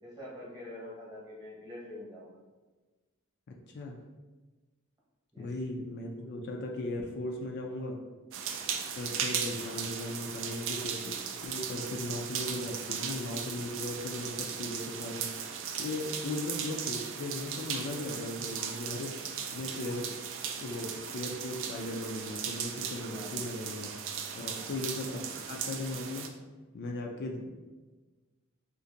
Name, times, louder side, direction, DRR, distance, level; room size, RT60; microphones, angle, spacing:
voice 1, 0.0-2.4 5.3-5.5 23.1-23.4 24.6-24.8, left 1 dB, 20° right, -5 dB, 1.0 m, -45 dB
voice 2, 3.5-4.0 5.4-8.0 9.0-15.3 15.8-19.2 19.5-20.1 20.6-23.9 24.3-26.3 26.7-27.5, left 2 dB, 55° left, 1 dB, 0.4 m, -37 dB
sound 1, 8.3-26.3, right 7 dB, 65° right, 0.4 m, -37 dB
2.6 x 2.5 x 3.8 m, 1.3 s
head